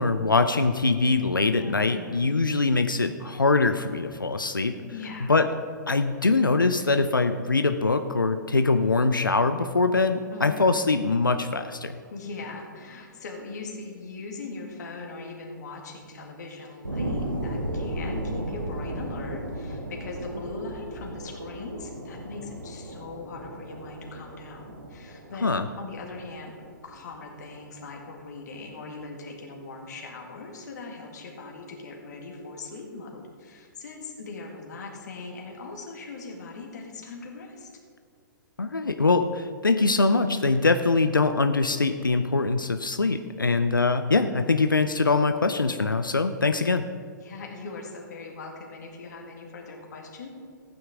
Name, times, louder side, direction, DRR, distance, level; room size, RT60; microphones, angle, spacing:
voice 1, 0.0-4.8 5.2-5.5 5.9-12.0 25.4-25.7 38.6-46.9, left 3 dB, 85° left, 8 dB, 0.6 m, -23 dB
voice 2, 1.5-2.4 4.9-5.4 10.3-10.6 12.1-25.5 25.8-26.5 26.8-37.7 47.2-50.3, left 3 dB, 55° left, 0 dB, 2.0 m, -40 dB
sound 1, 16.8-27.8 28.3-28.4, right 1 dB, 85° right, 1.6 m, -35 dB
15.0 x 9.3 x 3.7 m, 2.3 s
figure-of-eight pair, 115°, 11 cm